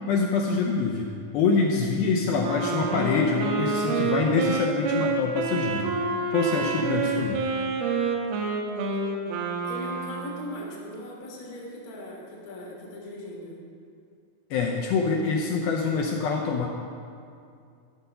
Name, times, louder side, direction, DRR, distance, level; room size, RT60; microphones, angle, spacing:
voice 1, 0.1-6.0 6.3-7.4 14.5-16.7, left 4 dB, 80° left, 0 dB, 2.3 m, -25 dB
Wind instrument woodwind instrument, 2.4-10.6, right 4 dB, 75° right, 2.7 m, -28 dB
voice 2, 9.6-13.6, left 1 dB, 45° left, -4 dB, 1.2 m, -39 dB
12.5 x 6.5 x 5.5 m, 2.4 s
omnidirectional pair, 4.8 m